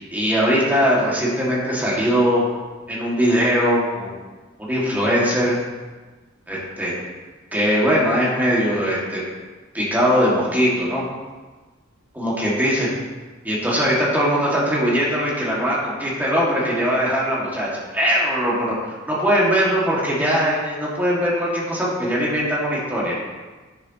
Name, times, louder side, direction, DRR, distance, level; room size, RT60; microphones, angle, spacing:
voice 1, 0.1-2.4 2.9-4.1 4.6-5.6 6.5-6.9 7.5-9.2 9.7-11.0 12.2-12.9 13.4-23.1, equal, 10° right, -6 dB, 2.2 m, -20 dB
9.8 x 7.0 x 3.1 m, 1.3 s
head